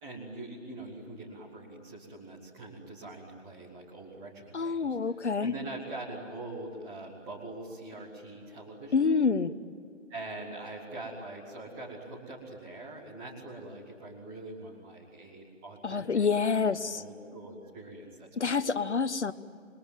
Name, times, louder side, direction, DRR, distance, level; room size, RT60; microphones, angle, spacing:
voice 1, 0.0-9.1 10.1-19.0, right 2 dB, 5° right, -6 dB, 0.7 m, -43 dB
voice 2, 4.5-5.5 8.9-9.5 15.8-17.0 18.4-19.3, left 5 dB, 65° left, 13 dB, 1.3 m, -27 dB
28.0 x 22.0 x 9.1 m, 2.3 s
figure-of-eight pair, 155°, 37 cm